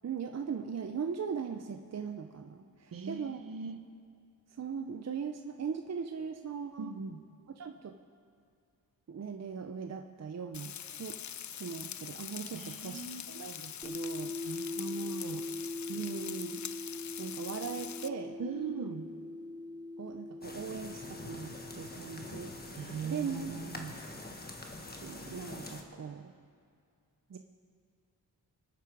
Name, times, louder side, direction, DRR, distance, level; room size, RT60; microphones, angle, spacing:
voice 1, 0.0-3.4 4.6-6.9 7.6-8.0 9.1-11.2 11.5-13.0 13.3-14.3 15.9-16.6 17.2-18.4 20.0-22.6 23.0-23.5 25.0-26.3 27.3-27.4, right 6 dB, 45° right, 5 dB, 0.6 m, -39 dB
voice 2, 2.9-3.9 6.8-7.2 12.5-13.2 14.4-15.5 18.4-19.1 22.8-24.0, right 5 dB, 60° right, 8 dB, 1.1 m, -40 dB
Frying (food), 10.5-18.1, left 9 dB, 50° left, 0.4 m, -43 dB
sound 1, 13.8-22.7, left 2 dB, 10° right, 1.2 m, -42 dB
sound 2, 20.4-25.8, left 2 dB, 25° left, 1.4 m, -45 dB
25.0 x 9.3 x 4.8 m, 2.3 s
wide cardioid pair, 140°, 39 cm